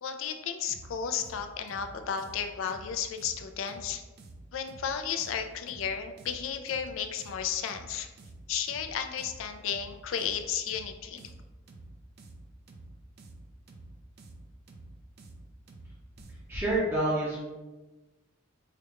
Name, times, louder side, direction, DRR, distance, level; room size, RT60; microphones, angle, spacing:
voice 1, 0.0-4.0 4.5-8.1 8.5-11.3, left 7 dB, 75° left, 7 dB, 0.4 m, -33 dB
sound 1, 0.7-16.6, right 2 dB, 50° right, 0.4 m, -50 dB
voice 2, 16.5-17.4, right 1 dB, 10° right, -7 dB, 0.6 m, -27 dB
4.9 x 2.2 x 2.9 m, 1.1 s
head